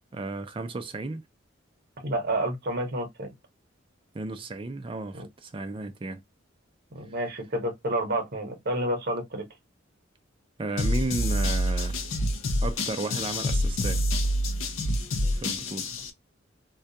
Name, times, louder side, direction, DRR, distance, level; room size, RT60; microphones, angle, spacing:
voice 1, 0.1-1.2 4.1-6.2 10.6-12.0 12.6-14.0 15.3-15.9, right 2 dB, 25° right, 0.4 m, -34 dB
voice 2, 2.0-3.3 5.1-5.3 6.9-9.5, right 1 dB, 50° right, 0.9 m, -29 dB
sound 1, 10.8-16.1, left 1 dB, 85° left, 0.5 m, -27 dB
2.3 x 2.2 x 2.7 m
head